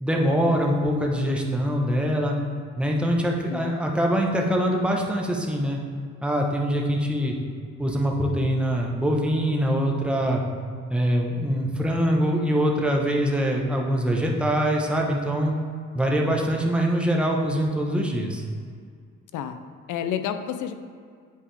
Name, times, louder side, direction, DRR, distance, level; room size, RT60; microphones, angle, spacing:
voice 1, 0.0-2.4 2.8-5.8 6.2-7.4 7.8-10.4 10.9-15.5 15.9-18.4, equal, 5° right, -1 dB, 1.0 m, -23 dB
voice 2, 3.2-3.7 19.3-19.6 19.9-20.7, left 9 dB, 80° left, 9 dB, 0.5 m, -30 dB
8.0 x 4.8 x 3.4 m, 2.1 s
cardioid pair, 90°, 30 cm